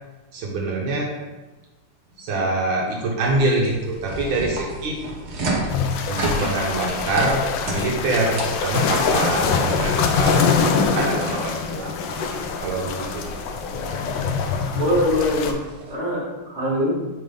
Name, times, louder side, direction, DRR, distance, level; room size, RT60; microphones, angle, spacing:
voice 1, 0.3-1.1 2.2-5.0 6.1-11.9 12.6-13.4, right 2 dB, 75° right, -1 dB, 1.6 m, -25 dB
sound 1, 3.2-16.0, right 1 dB, 55° right, 1.4 m, -33 dB
sound 2, 5.7-15.5, left 5 dB, 75° left, 1.1 m, -24 dB
voice 2, 14.8-16.9, left 1 dB, 20° right, -6 dB, 1.5 m, -23 dB
5.2 x 3.8 x 5.0 m, 1.2 s
omnidirectional pair, 2.4 m